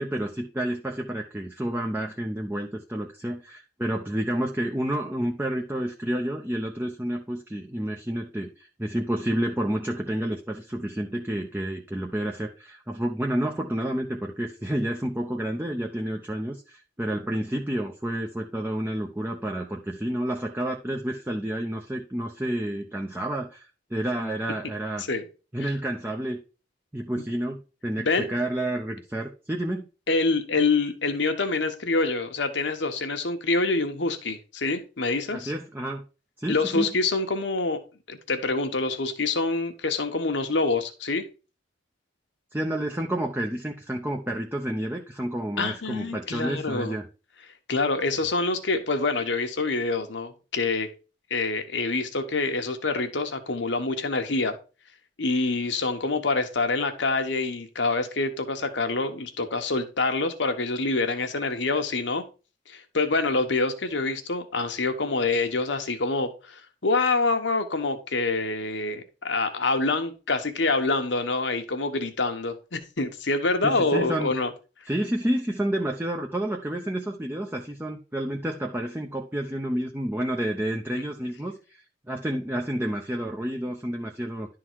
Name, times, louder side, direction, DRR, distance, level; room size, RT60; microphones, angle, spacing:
voice 1, 0.0-25.0 25.5-26.4 26.9-29.9 35.3-36.0 36.4-36.9 42.5-47.1 73.6-74.3 74.9-81.8 82.1-84.5, right 1 dB, 10° right, 0.7 m, -30 dB
voice 2, 30.1-35.5 36.5-37.8 38.1-41.2 45.6-47.0 47.7-50.9 51.3-54.6 55.2-62.2 62.7-74.5, left 3 dB, 75° left, 1.2 m, -26 dB
11.0 x 3.9 x 4.6 m
head